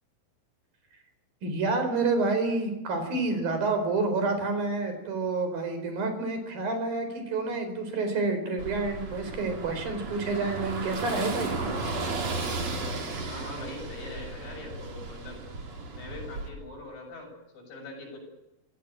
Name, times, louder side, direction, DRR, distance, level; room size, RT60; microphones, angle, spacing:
voice 1, 1.4-11.6, right 3 dB, 75° right, 7 dB, 6.2 m, -28 dB
Car passing by / Engine, 8.6-16.5, right 3 dB, 45° right, 4.4 m, -35 dB
voice 2, 13.3-15.4 15.9-18.2, left 2 dB, 70° left, 2 dB, 8.7 m, -42 dB
25.5 x 16.0 x 9.0 m, 0.96 s
omnidirectional pair, 4.2 m